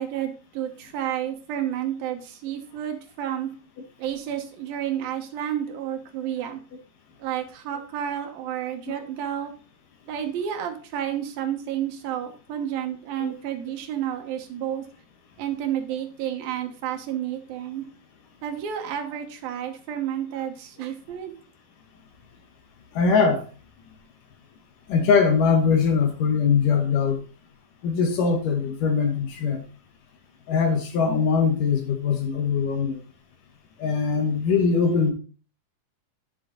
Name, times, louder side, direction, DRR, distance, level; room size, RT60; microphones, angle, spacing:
voice 1, 0.0-3.5 4.0-6.6 7.2-9.5 10.1-14.8 15.4-17.8 18.4-21.3, right 10 dB, 70° right, 5 dB, 2.9 m, -30 dB
voice 2, 22.9-23.4 24.9-27.2 27.8-29.6 30.5-33.0 33.8-35.1, left 5 dB, 65° left, 5 dB, 2.5 m, -22 dB
10.5 x 6.7 x 3.9 m, 0.37 s
omnidirectional pair, 4.5 m